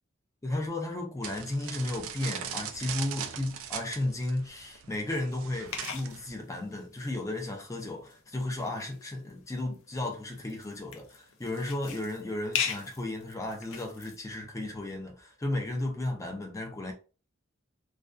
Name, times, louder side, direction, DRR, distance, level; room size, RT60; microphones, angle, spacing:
voice 1, 0.4-16.9, left 2 dB, 15° left, 0.4 m, -34 dB
sound 1, 1.2-6.3, right 9 dB, 85° right, 0.3 m, -40 dB
sound 2, 5.7-14.2, left 7 dB, 70° left, 0.5 m, -40 dB
2.3 x 2.2 x 2.4 m
head